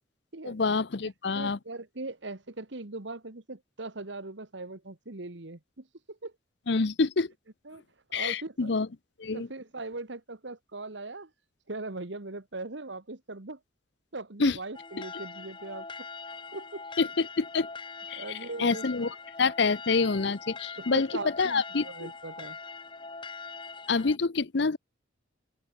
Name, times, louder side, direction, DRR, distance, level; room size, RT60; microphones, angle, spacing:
voice 1, 0.4-1.6 6.7-7.3 8.1-8.9 9.2-9.5 14.4-14.6 17.0-17.7 18.1-21.1 21.4-22.1 23.9-24.8, left 4 dB, 60° left, 0.7 m, -27 dB
voice 2, 1.3-6.3 7.6-7.8 8.1-8.7 9.3-11.3 11.7-13.6 14.1-16.1 16.5-16.8 18.1-19.1 20.8-22.6, right 2 dB, 65° right, 1.6 m, -40 dB
sound 1, 14.7-24.2, left 4 dB, 25° left, 2.3 m, -43 dB
open air
head